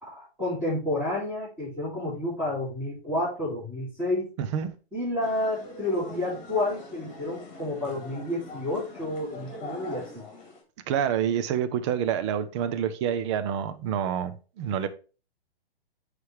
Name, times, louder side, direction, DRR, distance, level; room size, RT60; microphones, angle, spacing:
voice 1, 0.0-4.3 4.9-10.2, left 1 dB, 10° right, 3.4 m, -30 dB
voice 2, 4.4-4.8 10.9-14.9, right 9 dB, 30° right, 0.5 m, -27 dB
sound 1, 5.2-10.6, left 2 dB, 20° left, 2.1 m, -43 dB
9.5 x 3.3 x 3.5 m
hypercardioid pair, 145°, 32 cm